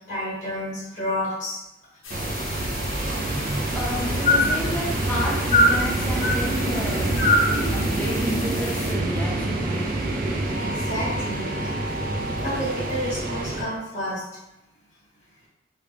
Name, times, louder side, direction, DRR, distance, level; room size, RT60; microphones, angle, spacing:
voice 1, 0.1-1.6 4.2-4.4 5.5-5.7 6.2-6.3 7.2-7.5 10.4-11.8 12.4-14.2, left 1 dB, 40° left, -9 dB, 1.2 m, -25 dB
sound 1, 2.0-8.9, left 4 dB, 90° left, 0.6 m, -37 dB
sound 2, 2.1-13.6, right 2 dB, 50° right, 0.4 m, -26 dB
voice 2, 3.7-7.1 7.7-9.9, equal, 10° left, -5 dB, 0.5 m, -31 dB
3.2 x 2.3 x 3.4 m, 0.91 s
head